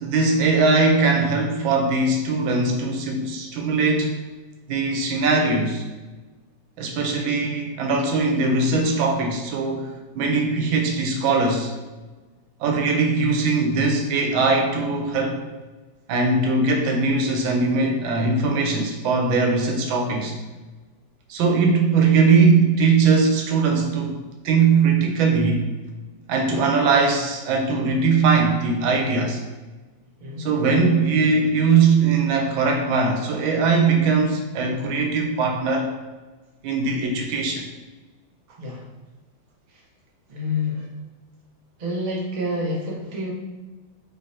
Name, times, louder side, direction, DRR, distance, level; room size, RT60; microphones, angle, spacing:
voice 1, 0.0-4.1 4.7-5.8 6.8-11.7 12.6-15.4 16.1-20.3 21.3-24.2 24.4-25.6 26.3-29.4 30.4-35.9 36.6-37.7, right 4 dB, 85° right, 2 dB, 1.4 m, -20 dB
voice 2, 40.3-40.8 41.8-43.3, left 2 dB, 40° right, -4 dB, 0.6 m, -27 dB
3.7 x 3.3 x 2.7 m, 1.2 s
omnidirectional pair, 2.1 m